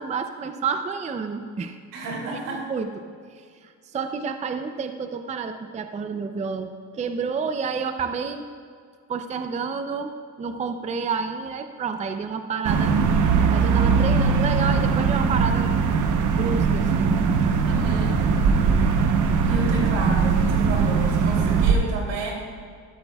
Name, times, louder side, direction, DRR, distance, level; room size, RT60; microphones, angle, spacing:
voice 1, 0.0-1.8 2.5-3.0 3.3-8.4 9.1-12.9 13.5-15.7 16.3-17.2, right 5 dB, 20° right, 8 dB, 0.5 m, -29 dB
voice 2, 1.9-2.6 17.6-18.2 19.4-22.3, right 2 dB, 80° right, -1 dB, 3.0 m, -31 dB
sound 1, 12.6-21.7, right 5 dB, 55° right, 0.9 m, -20 dB
13.0 x 12.5 x 2.3 m, 2.1 s
cardioid pair, 105°, 35 cm